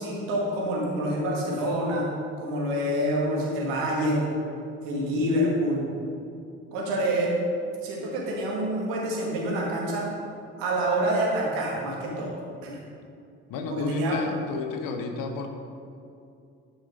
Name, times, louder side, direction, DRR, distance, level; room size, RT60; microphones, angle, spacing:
voice 1, 0.0-2.0 2.4-4.3 4.8-5.9 6.7-7.3 7.8-10.1 10.6-12.8 13.7-14.2, right 1 dB, 85° right, -4 dB, 2.1 m, -27 dB
voice 2, 13.5-15.5, left 4 dB, 75° left, 5 dB, 1.1 m, -32 dB
11.0 x 6.5 x 5.1 m, 2.5 s
hypercardioid pair, 45°, 34 cm